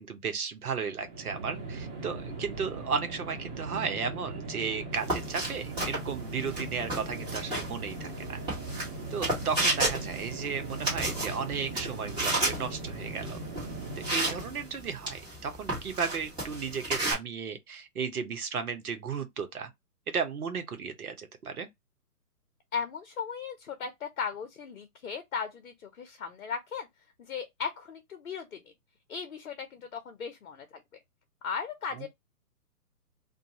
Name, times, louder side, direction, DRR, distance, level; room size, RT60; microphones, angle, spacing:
voice 1, 0.0-8.4 9.1-13.4 14.1-19.7 20.1-21.7 31.9-32.1, right 6 dB, 70° right, 0.9 m, -34 dB
sound 1, 0.9-14.8, right 3 dB, 35° right, 1.2 m, -39 dB
sound 2, 4.9-17.1, right 1 dB, 10° right, 1.2 m, -33 dB
voice 2, 22.7-26.9 27.2-28.6 29.1-30.7 30.9-31.0 31.4-32.1, left 6 dB, 60° left, 0.7 m, -37 dB
2.5 x 2.3 x 2.8 m
figure-of-eight pair, 135°, 46 cm